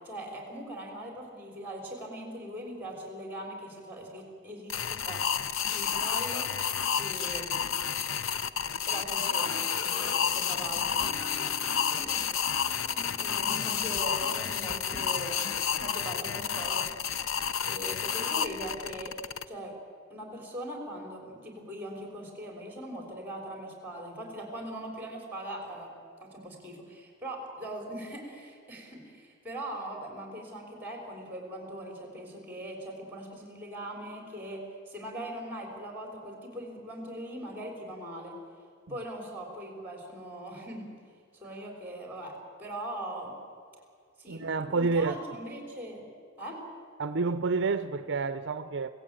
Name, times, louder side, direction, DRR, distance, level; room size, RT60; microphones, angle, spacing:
voice 1, 0.0-6.5 7.0-8.0 8.9-11.1 12.0-12.3 13.2-15.5 15.7-16.9 17.7-19.2 19.5-19.7 20.1-25.9 26.2-38.4 38.9-40.9 41.4-43.4 44.2-46.0 46.4-46.6, right 1 dB, 10° right, 2 dB, 3.9 m, -41 dB
sound 1, 4.7-19.4, left 7 dB, 75° left, 0.7 m, -30 dB
sound 2, 10.4-15.3, left 1 dB, 20° left, 1.5 m, -46 dB
voice 2, 44.3-45.2 47.0-48.9, right 4 dB, 60° right, 12 dB, 0.6 m, -29 dB
24.0 x 16.5 x 9.0 m, 2.2 s
head